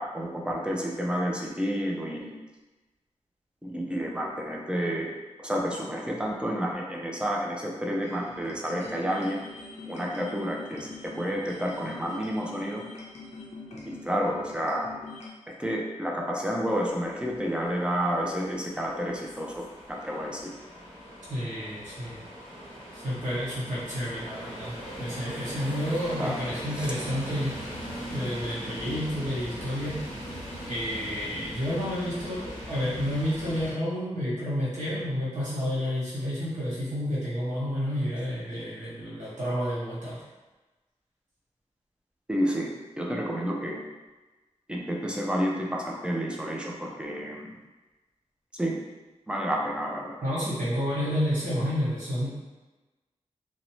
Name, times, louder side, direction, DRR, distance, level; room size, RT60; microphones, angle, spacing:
voice 1, 0.0-2.3 3.6-5.1 5.4-9.4 9.9-12.8 13.9-14.9 15.6-20.5 26.2-26.4 26.7-26.9 42.3-42.7 43.0-43.8 44.7-47.5 48.5-48.8 49.3-50.2, equal, 10° right, -1 dB, 0.4 m, -30 dB
sound 1, 8.0-15.3, left 3 dB, 70° left, 0.5 m, -44 dB
sound 2, 16.7-33.7, equal, 25° right, 1.2 m, -40 dB
voice 2, 21.3-22.2 22.9-27.5 28.1-30.0 30.6-40.2 50.2-52.3, equal, 85° right, -8 dB, 1.2 m, -30 dB
2.6 x 2.0 x 2.9 m, 1.2 s
wide cardioid pair, 135°, 12 cm